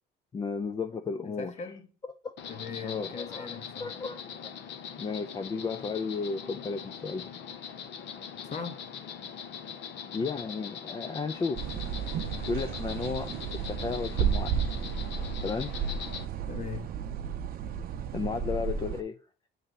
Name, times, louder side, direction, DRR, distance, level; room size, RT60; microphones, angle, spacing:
voice 1, 0.3-1.7 2.0-2.3 2.8-3.5 3.8-4.2 5.0-7.3 10.1-11.6 12.1-13.3 13.7-14.5 15.4-15.7 18.1-19.2, left 4 dB, 20° left, 0.3 m, -33 dB
voice 2, 1.2-1.9 2.5-3.9 6.5-6.6 8.4-8.8 16.5-16.9, left 5 dB, 35° left, 0.9 m, -40 dB
Insect, 2.4-16.2, left 7 dB, 65° left, 0.8 m, -42 dB
sound 1, 11.5-19.0, right 7 dB, 50° right, 0.7 m, -33 dB
7.7 x 3.3 x 3.9 m
cardioid pair, 135°, 19 cm